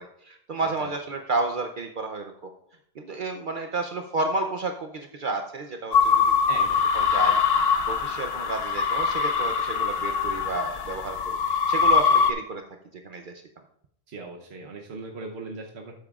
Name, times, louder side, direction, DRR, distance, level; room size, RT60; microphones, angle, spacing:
voice 1, 0.0-2.5 3.0-6.2 6.9-12.6 12.9-13.4, right 3 dB, 55° right, 5 dB, 0.8 m, -31 dB
voice 2, 0.6-0.9 6.5-6.8 14.1-15.9, right 3 dB, 80° right, 1 dB, 1.1 m, -39 dB
sound 1, 5.9-12.3, left 5 dB, 70° left, 0.9 m, -23 dB
12.0 x 8.8 x 2.4 m, 0.74 s
omnidirectional pair, 1.1 m